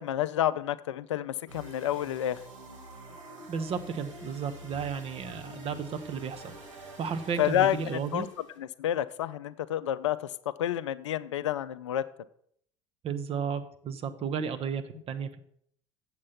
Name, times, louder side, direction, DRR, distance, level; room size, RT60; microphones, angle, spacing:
voice 1, 0.0-2.4 5.5-5.7 7.4-8.3 8.6-10.3 10.6-12.1, left 11 dB, 70° left, 15 dB, 0.4 m, -29 dB
sound 1, 1.5-8.6, right 2 dB, 80° right, 1.8 m, -47 dB
voice 2, 3.5-6.5 7.0-8.3 13.0-15.4, right 6 dB, 40° right, 8 dB, 0.9 m, -33 dB
7.9 x 7.5 x 5.7 m, 0.66 s
figure-of-eight pair, 65°, 16 cm